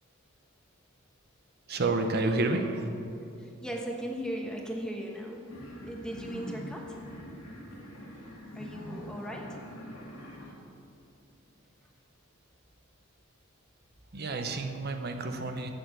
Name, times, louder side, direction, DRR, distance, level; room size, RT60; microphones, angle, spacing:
voice 1, 1.7-2.9 14.1-15.7, right 2 dB, 50° right, 6 dB, 0.8 m, -29 dB
voice 2, 3.4-5.5 5.8-7.0 8.5-9.6, equal, 5° left, 0 dB, 1.1 m, -37 dB
sound 1, 5.5-10.5, equal, 80° left, 1.9 m, -43 dB
7.7 x 6.6 x 7.8 m, 2.8 s
head